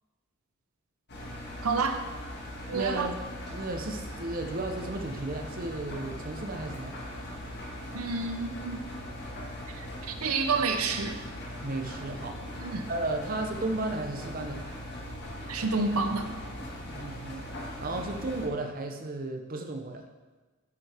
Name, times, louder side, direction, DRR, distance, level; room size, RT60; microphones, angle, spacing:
Engine, 1.1-18.5, left 1 dB, 50° left, 1.7 m, -40 dB
voice 1, 1.6-2.0 2.7-3.1 7.9-8.9 9.7-11.2 12.6-12.8 15.5-16.3, right 4 dB, 80° right, 6 dB, 0.8 m, -29 dB
voice 2, 2.7-3.2 3.5-7.0 11.6-12.6 12.9-14.6 16.9-17.5 17.8-20.0, right 2 dB, 40° right, 4 dB, 0.8 m, -34 dB
10.0 x 6.8 x 3.5 m, 1.3 s
head